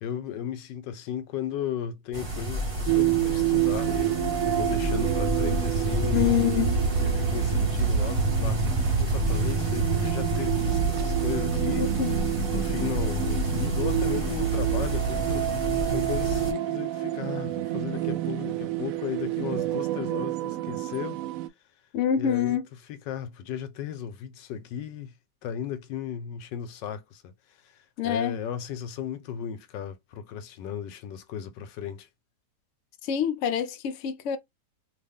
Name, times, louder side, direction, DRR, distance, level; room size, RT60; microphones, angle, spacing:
voice 1, 0.0-4.2 4.5-6.4 7.0-8.6 8.9-11.9 12.5-21.2 22.2-22.6 22.9-25.1 25.4-32.1, left 9 dB, 90° left, 1.3 m, -35 dB
sound 1, 2.1-16.5, right 2 dB, 20° right, 1.2 m, -28 dB
sound 2, 2.9-21.5, right 15 dB, 75° right, 0.8 m, -29 dB
voice 2, 6.1-6.8 11.8-12.2 21.9-22.6 28.0-28.4 33.0-34.4, left 9 dB, 70° left, 0.7 m, -26 dB
3.3 x 2.4 x 3.5 m
omnidirectional pair, 1.9 m